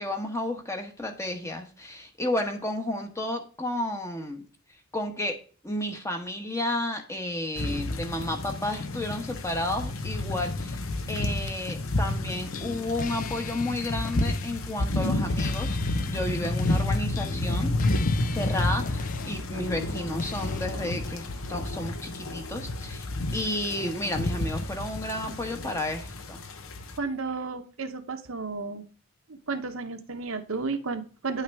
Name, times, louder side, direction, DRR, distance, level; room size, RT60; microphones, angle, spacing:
voice 1, 0.0-4.4 4.9-17.7 18.2-23.0 23.3-26.4, left 1 dB, 15° left, 4 dB, 1.1 m, -32 dB
sound 1, 7.6-27.0, left 2 dB, 65° left, 0.9 m, -31 dB
sound 2, 7.6-12.1 12.4-20.7, left 4 dB, 35° left, 0.3 m, -38 dB
voice 2, 27.0-28.9 29.3-31.4, right 4 dB, 60° right, 7 dB, 0.9 m, -33 dB
10.0 x 5.7 x 3.5 m, 0.40 s
head